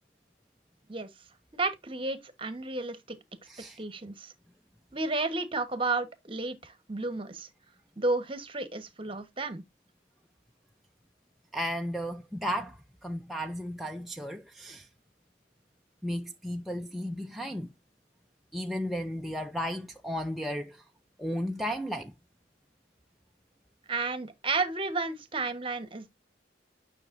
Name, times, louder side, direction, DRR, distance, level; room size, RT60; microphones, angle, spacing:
voice 1, 1.5-3.2 3.8-4.3 4.9-7.5 8.0-9.6 23.9-26.1, right 3 dB, 30° right, 1.2 m, -32 dB
voice 2, 3.5-3.8 11.5-12.8 13.0-14.9 16.0-17.7 18.5-20.8 21.2-22.1, equal, ahead, 0.5 m, -34 dB
10.0 x 6.1 x 2.6 m
head